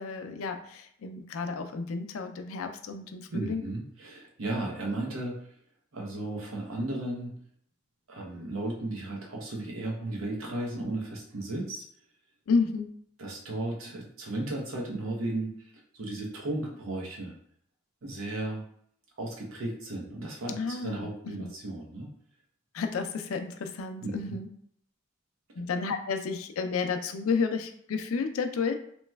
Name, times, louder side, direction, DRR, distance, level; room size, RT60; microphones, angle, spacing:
voice 1, 0.0-3.7 12.5-12.9 20.5-21.1 21.4-21.5 22.7-24.5 25.6-28.7, left 5 dB, 90° left, 6 dB, 0.4 m, -31 dB
voice 2, 3.3-5.4 5.9-7.4 8.1-11.8 13.2-15.5 15.9-17.4 18.0-18.6 19.2-22.1 24.0-24.3, right 2 dB, 85° right, 0 dB, 0.7 m, -35 dB
3.1 x 2.9 x 2.2 m, 0.66 s
head